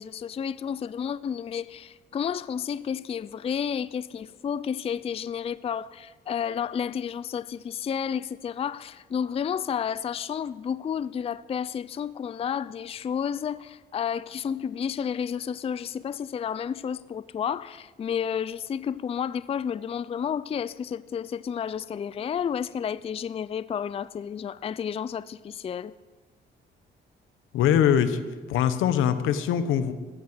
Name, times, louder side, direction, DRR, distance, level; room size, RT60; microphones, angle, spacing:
voice 1, 0.0-25.9, left 8 dB, 30° left, 0.4 m, -31 dB
voice 2, 27.5-28.2 28.5-29.9, left 9 dB, 85° left, 1.0 m, -22 dB
14.0 x 8.5 x 7.9 m
cardioid pair, 90°, 20 cm